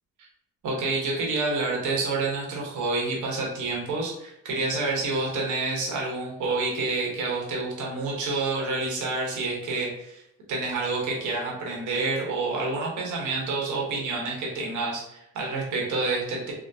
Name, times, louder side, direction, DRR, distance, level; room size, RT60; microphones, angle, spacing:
voice 1, 0.6-10.2 10.5-16.5, right 3 dB, 75° right, -2 dB, 1.1 m, -28 dB
3.5 x 2.1 x 2.7 m, 0.80 s
cardioid pair, 90°, 30 cm